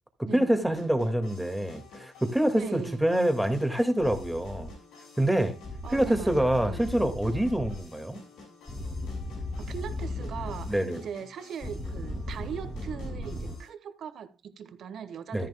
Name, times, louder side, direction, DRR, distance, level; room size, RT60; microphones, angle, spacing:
voice 1, 0.2-4.7 5.2-5.5 5.9-8.2 10.7-11.0 15.3-15.5, right 1 dB, 5° right, 2.0 m, -26 dB
sound 1, 0.8-13.7, left 3 dB, 85° left, 6.4 m, -51 dB
voice 2, 2.5-3.0 5.8-6.9 9.6-15.5, right 8 dB, 65° right, 1.2 m, -40 dB
sound 2, 4.0-4.7 5.6-7.8 8.7-10.7 11.6-13.6, left 1 dB, 20° left, 2.6 m, -36 dB
13.0 x 10.5 x 2.2 m
cardioid pair, 90°, 0 cm